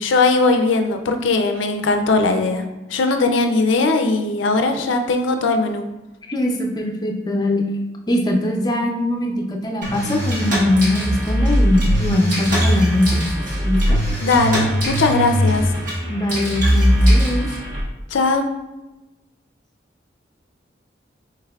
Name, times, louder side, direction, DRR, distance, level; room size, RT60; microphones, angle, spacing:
voice 1, 0.0-2.6 2.9-5.8 14.2-15.7 18.1-18.5, left 3 dB, 85° left, 6 dB, 0.5 m, -19 dB
voice 2, 6.3-7.6 8.1-14.0 16.1-17.5, left 1 dB, 20° left, 1 dB, 0.5 m, -21 dB
sound 1, 9.8-17.8, equal, 45° right, 1.4 m, -20 dB
5.6 x 3.4 x 2.3 m, 1.1 s
head